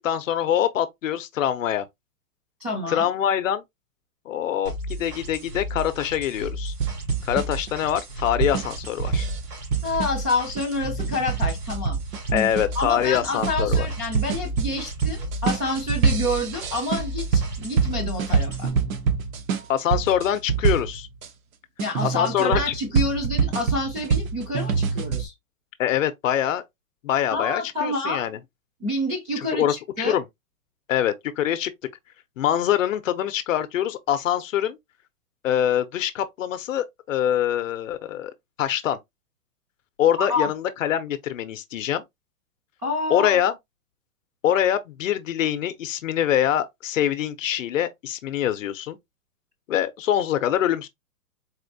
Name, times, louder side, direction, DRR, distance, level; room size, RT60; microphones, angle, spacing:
voice 1, 0.0-1.9 2.9-3.6 4.3-6.7 7.2-9.3 12.3-13.9 19.7-21.1 22.0-22.7 25.8-26.6 27.0-28.4 29.4-30.2 30.9-31.7 32.4-34.8 35.4-38.3 38.6-39.0 40.0-42.0 43.1-43.6 44.4-49.0 49.7-50.9, left 10 dB, 60° left, 0.7 m, -24 dB
voice 2, 2.6-3.1 9.8-12.0 12.3-12.5 12.7-18.7 21.8-25.3 27.3-28.2 28.8-30.2 40.2-40.5 42.8-43.4, left 2 dB, 10° right, 0.4 m, -28 dB
sound 1, 4.6-18.7, equal, 85° right, 2.0 m, -35 dB
sound 2, 6.8-21.3 21.8-25.3, right 6 dB, 65° right, 0.8 m, -26 dB
4.2 x 2.5 x 2.5 m
hypercardioid pair, 155°, 45 cm